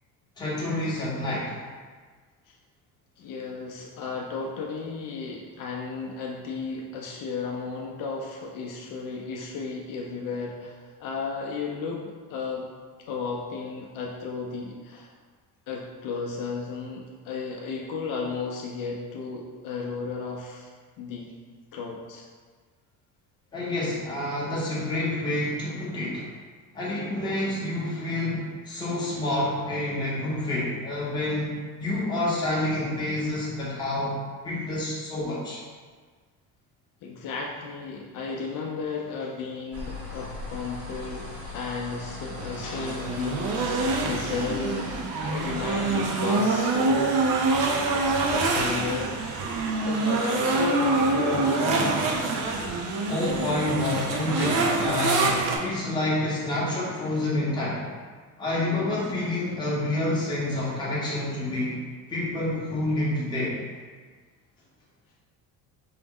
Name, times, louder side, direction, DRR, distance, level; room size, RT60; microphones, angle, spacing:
voice 1, 0.4-1.5 23.5-26.2 26.7-34.2 34.4-35.6 53.1-57.9 58.4-61.8 62.1-63.6, left 1 dB, 10° left, -7 dB, 0.7 m, -28 dB
voice 2, 3.2-12.7 13.1-15.1 15.7-20.7 21.0-21.3 21.7-22.2 37.0-47.2 48.3-49.1 49.8-52.1, left 4 dB, 60° left, -2 dB, 0.5 m, -34 dB
sound 1, 39.7-45.7, left 4 dB, 40° right, 0.9 m, -39 dB
sound 2, 42.4-55.6, right 3 dB, 60° right, 0.5 m, -25 dB
4.6 x 2.0 x 3.5 m, 1.5 s
cardioid pair, 175°, 37 cm